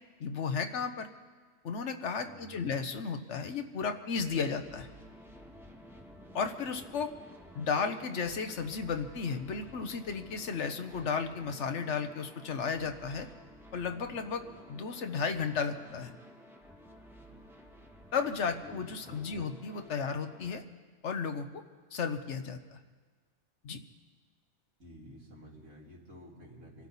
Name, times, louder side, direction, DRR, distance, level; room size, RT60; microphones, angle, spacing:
voice 1, 0.2-1.1 1.6-4.9 6.3-7.1 7.5-13.3 13.7-14.4 14.7-16.1 18.1-20.6 21.0-21.6 21.9-22.8 23.6-23.8, left 5 dB, 65° left, 7 dB, 1.2 m, -34 dB
voice 2, 2.2-2.9 18.6-19.5 24.8-26.9, equal, 80° right, -4 dB, 3.4 m, -51 dB
sound 1, 4.6-20.5, equal, ahead, 1.3 m, -53 dB
26.0 x 13.0 x 4.1 m, 1.5 s
omnidirectional pair, 1.3 m